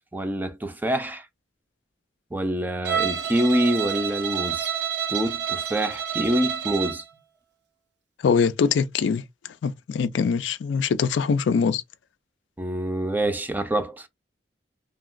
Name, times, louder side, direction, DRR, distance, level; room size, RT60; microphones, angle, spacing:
voice 1, 0.1-1.3 2.3-4.7 5.1-7.0 12.6-14.1, right 1 dB, 10° right, 0.4 m, -26 dB
Bowed string instrument, 2.8-7.1, right 8 dB, 65° right, 0.6 m, -28 dB
voice 2, 8.2-9.2 9.6-11.8, left 5 dB, 80° left, 0.4 m, -23 dB
2.9 x 2.8 x 2.5 m
head